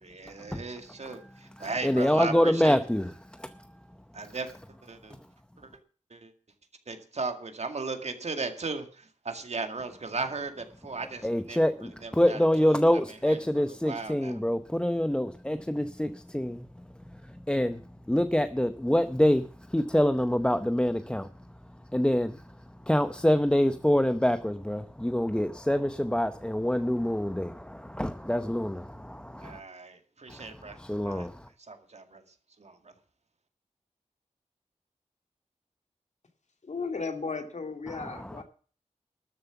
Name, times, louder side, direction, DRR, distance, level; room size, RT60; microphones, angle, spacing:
voice 1, 0.0-2.8 4.1-4.5 4.8-5.2 5.6-5.7 6.1-6.3 6.9-12.8 13.2-13.4 13.7-14.4 29.4-30.8 31.0-31.3 31.7-32.2 32.6-32.9, right 3 dB, 60° right, 2.0 m, -37 dB
voice 2, 1.6-3.7 11.2-21.3 21.9-22.5 22.8-29.6 30.3-31.5 37.9-38.4, equal, 5° left, 0.7 m, -26 dB
voice 3, 36.6-38.4, left 4 dB, 65° left, 2.4 m, -35 dB
13.0 x 7.5 x 7.0 m
wide cardioid pair, 90°, 13 cm